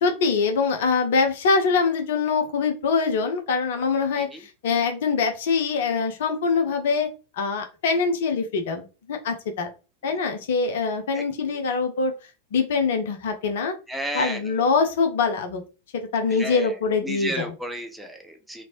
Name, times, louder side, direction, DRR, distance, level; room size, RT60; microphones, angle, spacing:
voice 1, 0.0-7.1 7.3-9.7 10.0-12.1 12.5-13.7 14.1-15.6 15.9-17.5, left 4 dB, 55° left, 6 dB, 0.6 m, -24 dB
voice 2, 13.9-14.4 16.3-16.7 17.0-18.6, right 1 dB, 5° right, 4 dB, 0.6 m, -33 dB
3.0 x 2.6 x 2.9 m, 0.32 s
figure-of-eight pair, 90°, 0 cm